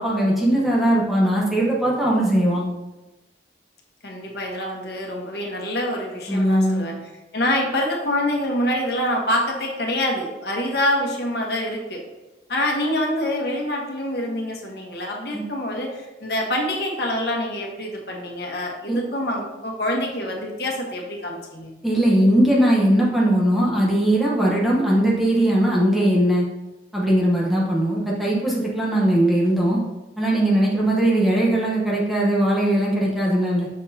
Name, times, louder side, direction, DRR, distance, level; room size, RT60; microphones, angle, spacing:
voice 1, 0.0-2.6 6.3-6.8 15.3-15.4 18.9-19.0 21.8-26.5 26.9-29.8 30.2-33.7, right 1 dB, ahead, -5 dB, 1.0 m, -19 dB
voice 2, 4.0-7.0 7.3-12.0 12.5-21.7, left 1 dB, 65° left, 0 dB, 1.4 m, -26 dB
6.4 x 6.1 x 2.8 m, 1.1 s
head